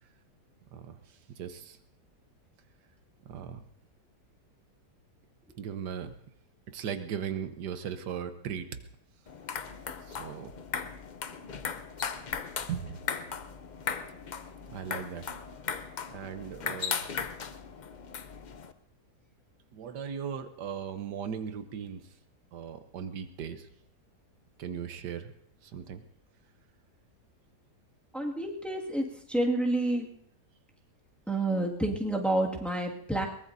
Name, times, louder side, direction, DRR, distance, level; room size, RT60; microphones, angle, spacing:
voice 1, 0.7-1.8 3.2-3.6 5.6-6.1 6.7-8.7 10.0-10.5 12.7-13.0 14.7-15.3 16.1-17.1 19.7-22.1 22.5-23.7 24.6-25.3 25.6-26.0, right 8 dB, 85° right, 9 dB, 1.5 m, -38 dB
sound 1, 9.3-18.7, left 6 dB, 80° left, 0.4 m, -37 dB
voice 2, 28.1-30.0 31.3-33.3, right 1 dB, ahead, -1 dB, 1.8 m, -29 dB
22.0 x 20.0 x 2.7 m, 0.69 s
omnidirectional pair, 1.8 m